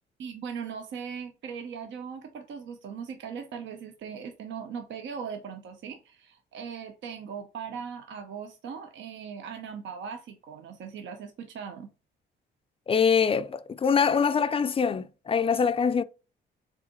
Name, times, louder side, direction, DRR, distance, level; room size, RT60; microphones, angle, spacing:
voice 1, 0.2-11.9, right 6 dB, 70° right, 0.7 m, -39 dB
voice 2, 12.9-16.0, left 6 dB, 30° left, 0.4 m, -24 dB
4.6 x 3.7 x 2.9 m
cardioid pair, 90°, 20 cm